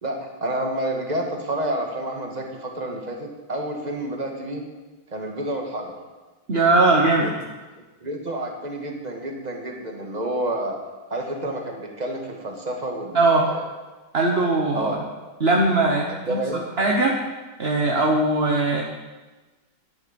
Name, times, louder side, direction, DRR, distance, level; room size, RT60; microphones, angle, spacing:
voice 1, 0.0-4.6 5.1-6.0 7.2-7.3 8.0-10.8 11.1-13.6 14.7-15.0 16.1-16.7, right 1 dB, 20° right, 1 dB, 1.6 m, -29 dB
voice 2, 6.5-7.3 13.1-13.5 14.1-14.9 15.4-16.4 16.8-17.2 17.6-18.8, right 2 dB, 40° right, -1 dB, 1.0 m, -20 dB
12.5 x 10.5 x 5.3 m, 1.2 s
omnidirectional pair, 2.3 m